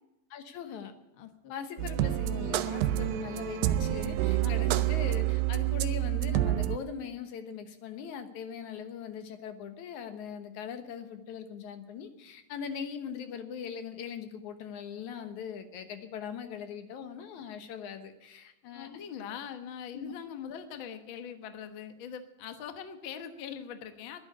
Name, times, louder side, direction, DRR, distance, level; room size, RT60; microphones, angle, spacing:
voice 1, 0.3-0.9 1.5-19.0 19.9-20.1, left 7 dB, 65° left, 7 dB, 2.4 m, -40 dB
voice 2, 1.2-1.5 4.4-4.7 18.7-24.2, left 8 dB, 80° left, 7 dB, 1.1 m, -42 dB
sound 1, 1.8-6.8, right 14 dB, 80° right, 2.4 m, -28 dB
11.5 x 10.5 x 9.8 m, 0.90 s
omnidirectional pair, 4.1 m